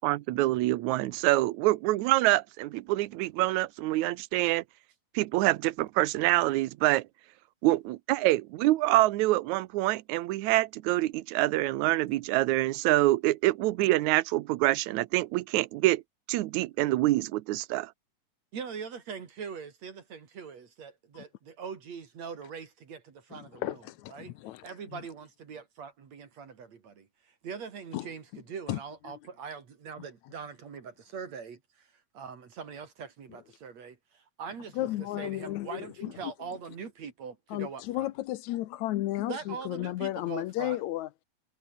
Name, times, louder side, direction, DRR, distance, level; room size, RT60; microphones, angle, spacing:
voice 1, 0.0-4.6 5.1-7.1 7.6-16.0 16.3-17.9, right 17 dB, 80° right, 2.2 m, -26 dB
voice 2, 18.5-23.8 24.1-24.3 24.6-31.9 32.1-38.1 39.3-40.8, right 6 dB, 65° right, 3.8 m, -42 dB
voice 3, 23.3-25.0 27.9-28.4 28.7-28.8 29.1-29.2 34.7-36.3 37.5-41.2, left 15 dB, 80° left, 2.1 m, -34 dB
omnidirectional pair, 3.4 m